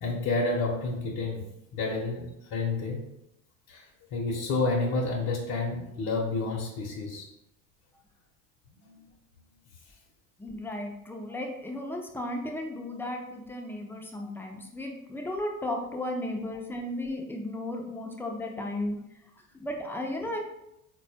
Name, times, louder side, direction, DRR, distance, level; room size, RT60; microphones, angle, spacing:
voice 1, 0.0-3.1 3.7-7.3 8.7-9.0, left 3 dB, 50° left, -2 dB, 0.7 m, -30 dB
voice 2, 10.4-19.0 19.5-20.4, left 1 dB, 5° left, 1 dB, 0.4 m, -34 dB
4.0 x 2.2 x 2.7 m, 0.83 s
hypercardioid pair, 85°, 42 cm